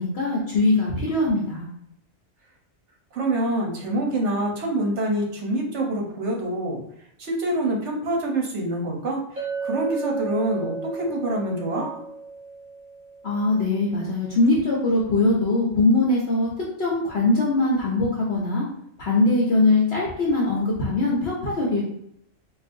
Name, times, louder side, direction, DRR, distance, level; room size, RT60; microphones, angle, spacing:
voice 1, 0.0-1.7 13.2-16.5 16.8-18.7 19.0-21.8, left 2 dB, 60° left, -4 dB, 1.0 m, -21 dB
voice 2, 3.1-6.8 7.2-9.2 9.6-12.0, right 1 dB, 70° right, 1 dB, 1.1 m, -26 dB
Chink clink, 9.4-13.8, right 4 dB, 40° right, 1.4 m, -34 dB
3.9 x 2.5 x 2.6 m, 0.74 s
omnidirectional pair, 1.2 m